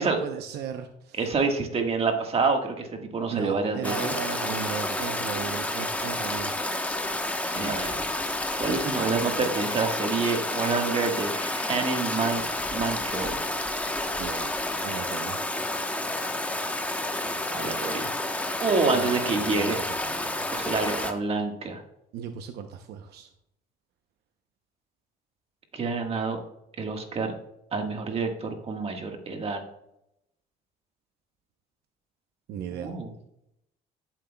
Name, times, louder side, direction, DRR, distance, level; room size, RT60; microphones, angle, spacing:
voice 1, 0.0-1.2 3.3-6.5 14.2-14.5 14.8-15.4 18.8-20.5 22.1-23.3 32.5-32.9, right 7 dB, 75° right, 6 dB, 0.8 m, -36 dB
voice 2, 1.2-4.1 7.4-8.0 8.6-13.4 17.5-18.1 18.6-19.8 20.5-21.8 25.7-26.4 26.8-27.3 27.7-29.6 32.7-33.1, right 4 dB, 35° right, 3 dB, 1.5 m, -27 dB
Stream, 3.8-21.1, left 1 dB, 10° left, 1.0 m, -30 dB
13.5 x 7.6 x 2.3 m, 0.79 s
cardioid pair, 110°, 17 cm